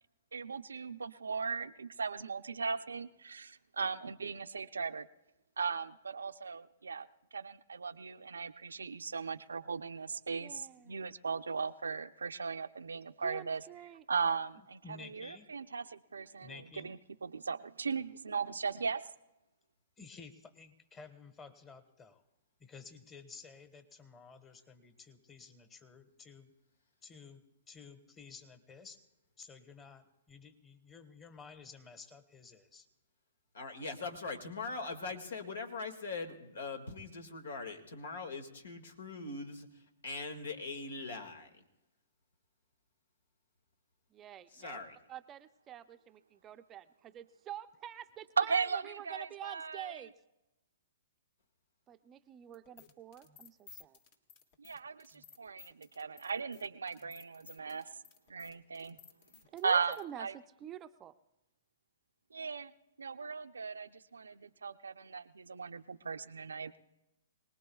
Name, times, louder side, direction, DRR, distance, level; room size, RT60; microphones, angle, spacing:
voice 1, 0.3-5.1 5.6-7.1 7.3-13.6 14.1-19.0 48.4-50.0 54.6-57.8 58.3-59.0 59.6-60.3 62.3-62.7 63.0-66.8, right 5 dB, 85° right, 10 dB, 0.6 m, -37 dB
voice 2, 10.4-10.9 13.2-14.0 44.1-44.8 45.1-50.1 51.9-54.0 59.5-61.1, right 11 dB, 25° right, 10 dB, 0.5 m, -48 dB
voice 3, 14.8-15.5 16.4-17.0 20.0-22.2 22.6-26.5 27.0-29.0 29.4-32.9, left 5 dB, 20° left, 9 dB, 1.4 m, -53 dB
voice 4, 33.5-39.7 40.0-41.5 44.5-45.0, left 3 dB, 80° left, 5 dB, 2.0 m, -41 dB
sound 1, 52.5-60.0, left 5 dB, 50° left, 1.7 m, -57 dB
24.5 x 19.0 x 2.3 m, 0.96 s
hypercardioid pair, 125°, 0 cm